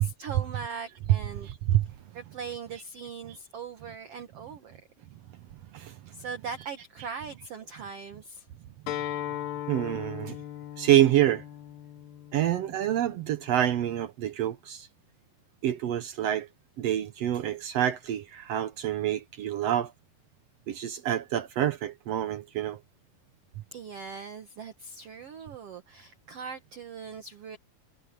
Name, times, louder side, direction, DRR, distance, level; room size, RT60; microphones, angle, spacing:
voice 1, 0.0-1.5 2.1-4.8 6.1-8.5 10.3-10.4 23.7-27.6, right 6 dB, 55° right, 1.9 m, -40 dB
voice 2, 1.4-1.9 5.7-6.0 9.7-10.4 10.8-11.4 12.3-14.9 15.6-16.5 16.8-19.9 20.7-22.8, right 12 dB, 80° right, 1.4 m, -27 dB
Acoustic guitar, 8.9-14.1, left 12 dB, 80° left, 3.3 m, -39 dB
omnidirectional pair, 4.0 m